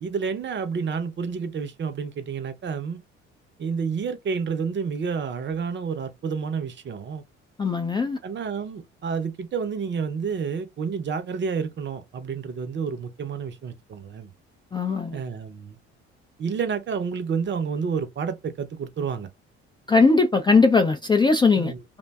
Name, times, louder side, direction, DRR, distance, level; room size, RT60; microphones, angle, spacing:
voice 1, 0.0-3.0 3.6-7.2 8.2-14.3 15.1-15.8 16.4-19.3 21.6-21.8, right 6 dB, 35° right, 0.6 m, -29 dB
voice 2, 7.6-8.2 14.7-15.2 19.9-21.7, left 4 dB, 15° left, 0.3 m, -19 dB
2.5 x 2.2 x 2.3 m
hypercardioid pair, 55°, 34 cm